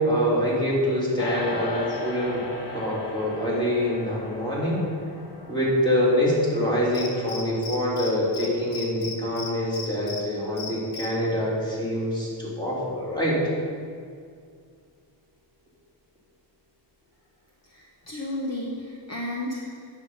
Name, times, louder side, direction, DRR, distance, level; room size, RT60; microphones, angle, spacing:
voice 1, 0.0-2.4 2.7-4.8 5.5-13.4, equal, 10° left, -7 dB, 2.8 m, -25 dB
sound 1, 1.2-10.7, left 2 dB, 65° left, 1.2 m, -38 dB
Cricket, 6.9-8.1 8.3-8.5 8.7-10.2 10.6-11.1, left 5 dB, 85° left, 1.6 m, -35 dB
voice 2, 17.6-19.9, left 1 dB, 35° left, -2 dB, 1.0 m, -33 dB
9.0 x 7.1 x 5.4 m, 2.1 s
wide cardioid pair, 140°, 44 cm